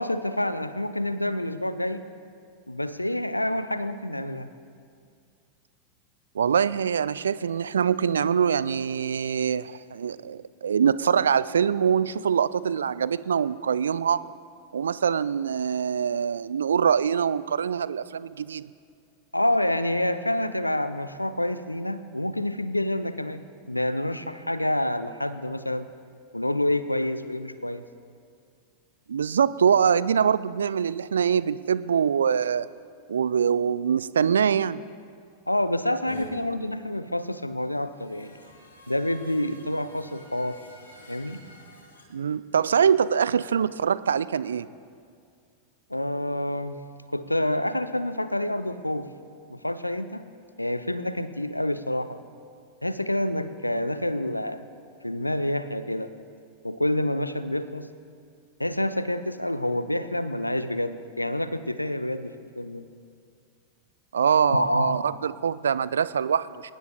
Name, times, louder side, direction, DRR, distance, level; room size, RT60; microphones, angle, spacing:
voice 1, 0.0-2.0 2.7-4.5 19.3-23.4 23.7-25.9 26.3-27.8 35.5-38.3 38.9-40.6 41.1-41.4 45.9-46.8 47.1-49.1 49.5-50.2 50.6-52.2 52.8-54.6 55.0-56.1 56.6-57.9 58.6-62.8 64.4-65.0, left 1 dB, 85° left, 12 dB, 0.6 m, -28 dB
voice 2, 6.4-14.3 14.7-18.7 29.1-32.7 33.1-34.8 42.1-44.7 64.1-66.7, right 7 dB, 70° right, 18 dB, 0.3 m, -24 dB
sound 1, 36.1-36.3 37.7-42.0, left 1 dB, 70° left, 3.1 m, -47 dB
23.0 x 20.0 x 2.3 m, 2.3 s
figure-of-eight pair, 90°, 0 cm